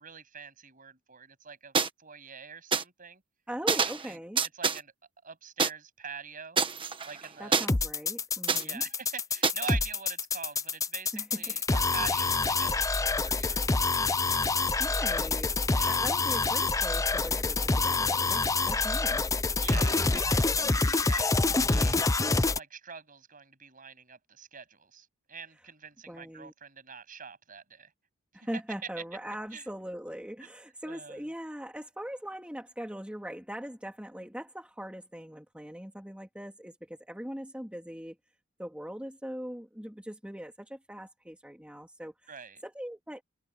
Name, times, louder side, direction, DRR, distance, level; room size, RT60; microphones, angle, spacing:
voice 1, 0.0-3.2 3.7-3.8 4.0-4.2 4.5-4.9 5.2-6.6 7.0-7.7 8.6-14.1 15.7-16.0 19.6-22.0 22.5-27.9 28.3-28.5 29.0-29.1 29.5-29.7 30.4-30.5 30.8-31.2 42.3-42.6, right 6 dB, 40° right, 8.0 m, -44 dB
sound 1, 1.7-1.9 2.7-2.8 3.7-4.1 4.4-4.8 5.6-5.7 6.6-7.7 8.5-8.6 9.4-9.5, right 5 dB, 25° right, 1.3 m, -26 dB
voice 2, 3.5-4.4 7.4-8.8 11.1-11.6 14.8-15.5 15.9-19.2 26.1-26.5 28.3-38.2 38.6-42.3 42.6-43.2, equal, 5° right, 2.6 m, -40 dB
sound 2, 7.7-22.6, left 3 dB, 15° left, 0.5 m, -27 dB
head